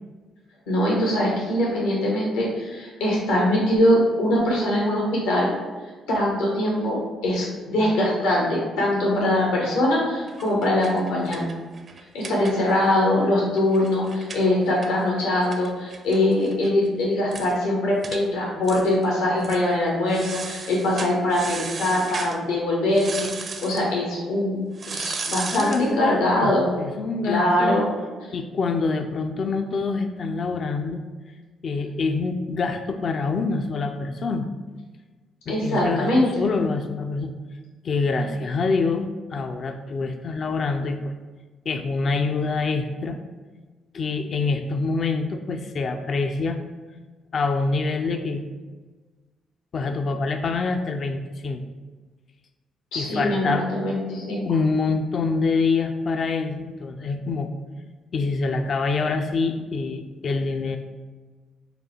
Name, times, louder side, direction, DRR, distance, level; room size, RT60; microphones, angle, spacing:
voice 1, 0.7-5.5 6.1-11.5 12.1-24.6 24.9-26.7 27.2-27.9 35.5-36.3 52.9-54.5, left 1 dB, 85° left, -4 dB, 1.1 m, -22 dB
sound 1, 10.3-12.9 13.2-13.3 13.6-16.7 17.0-17.1 17.3-17.5 18.0-18.2 18.6-19.1 19.4-19.6 20.1-22.4 22.9-23.9 24.8-25.9, right 4 dB, 50° right, 0.5 m, -35 dB
voice 2, 25.5-27.8 28.3-31.0 31.6-34.5 35.5-37.3 37.8-41.1 41.7-43.2 43.9-46.6 47.3-48.4 49.7-51.6 53.0-53.7 54.5-57.5 58.1-60.8, left 4 dB, 55° left, 6 dB, 0.4 m, -25 dB
5.0 x 2.3 x 4.3 m, 1.3 s
supercardioid pair, 55°, 0 cm